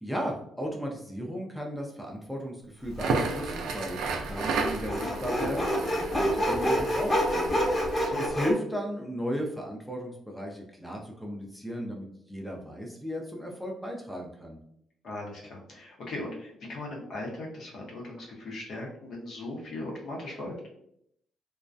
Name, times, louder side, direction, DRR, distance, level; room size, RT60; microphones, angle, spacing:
voice 1, 0.0-7.8 8.2-14.6, equal, ahead, -1 dB, 0.5 m, -35 dB
Crackle, 2.9-8.1, right 4 dB, 85° right, 0.4 m, -33 dB
Sawing, 3.1-3.2 4.3-8.5, equal, 20° left, 0.9 m, -27 dB
voice 2, 7.9-8.2 15.0-20.6, left 2 dB, 60° left, -2 dB, 0.8 m, -38 dB
2.3 x 2.1 x 2.5 m, 0.73 s
cardioid pair, 90°, 0 cm